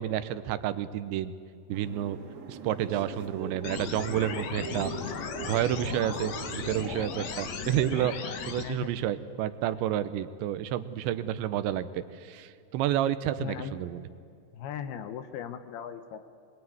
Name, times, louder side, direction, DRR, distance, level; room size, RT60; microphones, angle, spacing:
voice 1, 0.0-1.3 1.7-2.2 2.5-5.2 5.4-14.0, right 11 dB, 85° right, 12 dB, 3.2 m, -30 dB
sound 1, 1.7-7.3, right 4 dB, 60° right, 3.6 m, -42 dB
sound 2, 3.6-8.6, left 5 dB, 55° left, 2.0 m, -36 dB
voice 2, 8.5-8.9 13.4-13.8 14.5-16.3, left 8 dB, 75° left, 9 dB, 2.6 m, -38 dB
26.0 x 21.0 x 9.5 m, 2.4 s
omnidirectional pair, 5.1 m